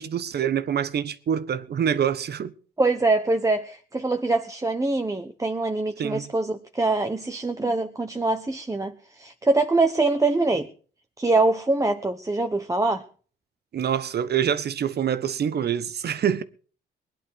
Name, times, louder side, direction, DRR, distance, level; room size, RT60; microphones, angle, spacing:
voice 1, 0.0-2.5 6.0-6.3 13.7-16.4, right 8 dB, 55° right, 1.3 m, -25 dB
voice 2, 2.8-10.7 11.2-13.0, right 2 dB, 15° right, 1.2 m, -24 dB
20.5 x 11.0 x 4.8 m
cardioid pair, 90°, 20 cm